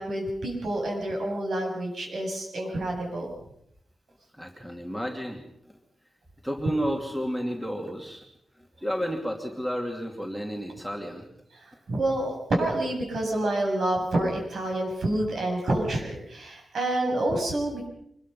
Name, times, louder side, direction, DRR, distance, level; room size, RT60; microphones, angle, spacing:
voice 1, 0.0-3.3 11.9-17.9, right 1 dB, 65° right, 1 dB, 8.0 m, -28 dB
voice 2, 4.4-5.4 6.4-8.2 8.8-11.3, equal, 5° right, 1 dB, 2.7 m, -31 dB
25.5 x 21.5 x 5.6 m, 0.74 s
wide cardioid pair, 135°, 0 cm